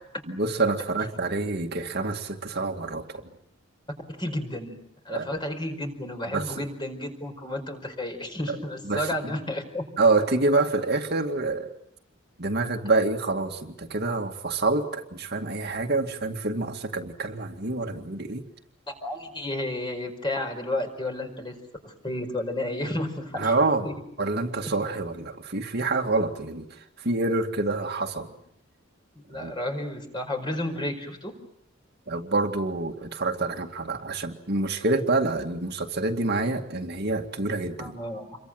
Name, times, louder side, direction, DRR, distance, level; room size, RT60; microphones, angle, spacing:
voice 1, 0.3-3.2 5.1-5.3 6.3-6.7 8.5-8.6 8.8-9.1 10.0-11.7 12.4-18.4 23.4-23.9 24.2-28.3 29.3-29.5 32.1-38.0, right 3 dB, 50° right, 3 dB, 2.1 m, -27 dB
voice 2, 4.1-9.8 18.9-21.6 21.8-23.5 23.8-23.9 29.3-31.3 37.8-38.4, left 1 dB, 25° left, 5 dB, 5.1 m, -32 dB
28.5 x 23.5 x 7.9 m, 0.73 s
head